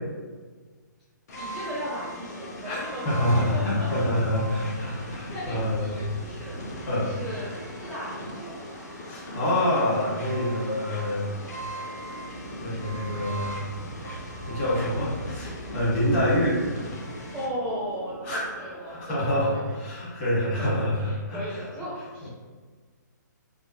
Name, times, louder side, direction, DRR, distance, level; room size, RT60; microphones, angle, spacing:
sound 1, 1.3-17.5, equal, 55° left, 0.8 m, -39 dB
voice 1, 1.4-4.1 4.7-6.6 7.0-8.6 17.3-19.8 20.4-22.3, equal, 5° left, -10 dB, 0.5 m, -37 dB
sound 2, 1.4-19.8, right 1 dB, 85° right, 0.6 m, -44 dB
voice 2, 3.0-5.8 6.9-7.1 9.0-11.3 12.0-12.1 12.6-13.6 14.5-16.6 18.2-18.4 18.9-21.6, left 1 dB, 35° left, -7 dB, 1.4 m, -26 dB
3.3 x 2.1 x 2.8 m, 1.4 s
hypercardioid pair, 135°, 10 cm